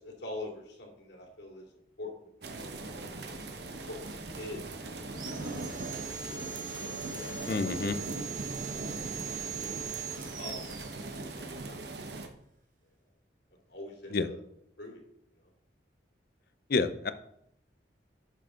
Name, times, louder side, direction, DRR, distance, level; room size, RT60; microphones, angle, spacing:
voice 1, 0.0-1.7 2.0-2.3 2.8-3.2 3.9-4.6 6.7-7.8 9.0-10.8 13.7-14.4 14.8-15.0 15.4-15.5, left 2 dB, 75° left, 0 dB, 2.5 m, -45 dB
sound 1, 2.4-12.3, right 2 dB, 70° right, 1.1 m, -40 dB
Sawing, 5.1-11.5, right 7 dB, 45° right, 1.7 m, -41 dB
voice 2, 7.5-8.0 14.1-14.3 16.7-17.1, left 3 dB, 55° left, 11 dB, 0.6 m, -28 dB
10.5 x 6.6 x 3.8 m, 0.75 s
head